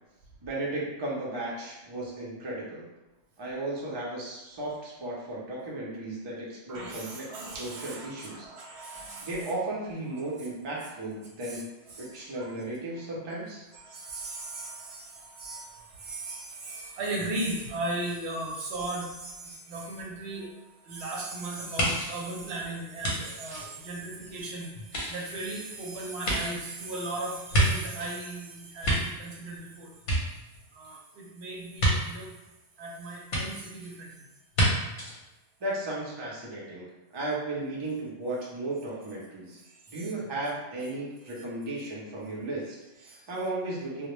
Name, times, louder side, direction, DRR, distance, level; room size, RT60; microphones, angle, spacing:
voice 1, 0.4-2.9 3.4-7.3 7.6-8.4 9.2-11.6 12.0-13.6 35.6-36.9 37.1-39.6 39.9-44.1, right 2 dB, 45° right, -5 dB, 0.3 m, -35 dB
voice 2, 6.7-9.5 10.2-10.3 11.4-11.6 11.9-12.5 13.8-20.5 20.8-29.9 30.7-32.3 32.8-34.3 39.6-40.0 43.1-43.2, right 2 dB, 65° right, -2 dB, 0.8 m, -37 dB
sound 1, 21.8-24.4 24.8-28.2 28.6-29.6 29.9-30.9 31.8-31.9 33.3-33.4 34.5-34.7 35.0-35.1, right 1 dB, 50° left, 0.7 m, -29 dB
2.1 x 2.0 x 3.0 m, 1.0 s
omnidirectional pair, 1.3 m